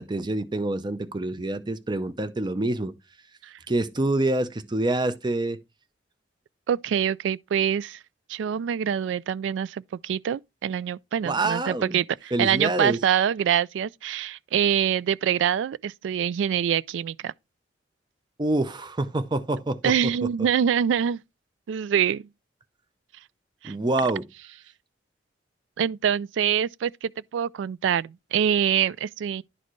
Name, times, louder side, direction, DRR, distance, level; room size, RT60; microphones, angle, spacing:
voice 1, 0.0-2.9 3.7-5.6 11.2-12.0 12.3-13.0 18.4-19.9 23.6-24.2, right 2 dB, 25° right, 0.6 m, -26 dB
voice 2, 6.7-8.0 8.3-17.3 19.8-21.2 21.7-22.3 23.6-23.7 25.8-29.4, right 8 dB, 75° right, 0.3 m, -25 dB
11.0 x 4.2 x 3.1 m
head